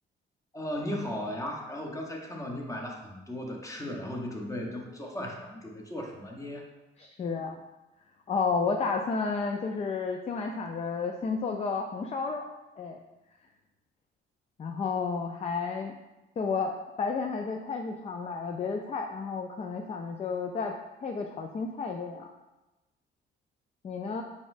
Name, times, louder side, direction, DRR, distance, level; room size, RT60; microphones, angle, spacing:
voice 1, 0.5-6.7, left 1 dB, 15° left, 0 dB, 0.9 m, -36 dB
voice 2, 7.0-7.6 8.3-12.5 12.8-13.0 14.6-16.0 16.4-20.7 21.0-22.3 23.8-24.2, left 4 dB, 35° left, 3 dB, 0.4 m, -31 dB
4.9 x 4.1 x 2.6 m, 1.0 s
cardioid pair, 90°, 20 cm